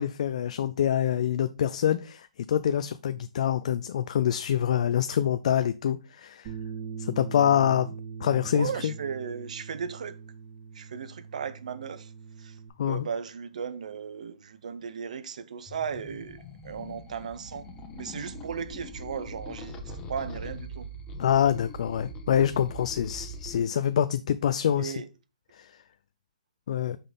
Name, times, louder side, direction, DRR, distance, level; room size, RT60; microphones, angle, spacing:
voice 1, 0.0-6.5 7.0-7.9 8.2-8.9 12.8-13.1 21.2-24.9 25.5-25.7 26.7-27.0, left 9 dB, 60° left, 0.4 m, -26 dB
Bass guitar, 6.4-12.7, right 6 dB, 30° right, 3.1 m, -41 dB
voice 2, 8.5-10.2 10.7-12.1 12.4-12.6 12.8-17.7 17.9-20.9 24.8-25.1, right 6 dB, 70° right, 0.7 m, -36 dB
sound 1, 15.7-23.6, equal, 20° left, 1.1 m, -42 dB
5.7 x 3.7 x 5.1 m
hypercardioid pair, 140°, 4 cm